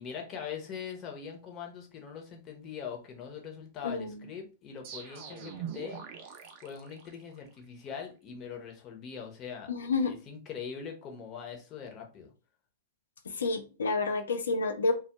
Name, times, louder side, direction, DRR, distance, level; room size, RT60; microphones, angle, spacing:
voice 1, 0.0-6.0 6.6-9.7 10.0-12.3, left 7 dB, 35° left, 2 dB, 0.7 m, -42 dB
voice 2, 3.8-4.3 9.7-10.2 13.3-14.9, left 3 dB, 80° left, 6 dB, 0.4 m, -29 dB
sound 1, 4.8-7.6, right 8 dB, 50° right, 0.5 m, -43 dB
2.2 x 2.0 x 2.8 m, 0.34 s
hypercardioid pair, 110°, 0 cm